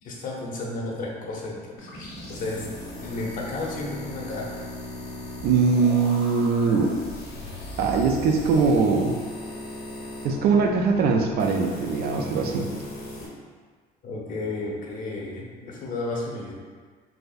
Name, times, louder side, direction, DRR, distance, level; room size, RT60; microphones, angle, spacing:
voice 1, 0.0-2.7 3.0-4.7 14.0-16.5, left 2 dB, 55° left, -3 dB, 0.8 m, -33 dB
sound 1, 1.8-13.3, left 1 dB, 75° left, 1.2 m, -37 dB
voice 2, 5.4-7.1 7.8-9.2 10.2-12.7, right 4 dB, 70° right, 2 dB, 0.5 m, -22 dB
4.0 x 2.6 x 2.5 m, 1.5 s
cardioid pair, 110°, 17 cm